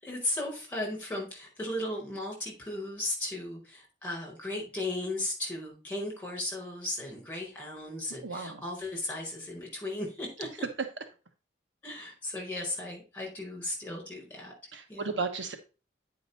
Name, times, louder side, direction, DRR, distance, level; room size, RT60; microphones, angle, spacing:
voice 1, 0.0-10.5 11.8-14.5 14.9-15.2, left 1 dB, 10° left, -1 dB, 4.7 m, -36 dB
voice 2, 8.2-8.6 14.7-15.5, right 4 dB, 70° right, 6 dB, 1.2 m, -34 dB
9.5 x 5.2 x 4.0 m, 0.32 s
head